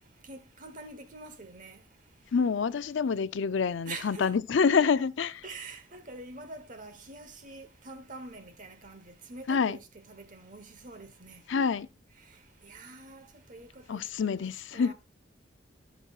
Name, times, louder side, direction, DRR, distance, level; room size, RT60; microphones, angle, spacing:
voice 1, 0.0-2.3 3.8-4.3 5.4-11.6 12.1-14.9, right 3 dB, 40° right, 1.2 m, -46 dB
voice 2, 2.3-5.4 9.5-9.8 11.5-11.9 13.9-14.9, left 5 dB, 70° left, 0.5 m, -27 dB
17.5 x 6.1 x 2.4 m
head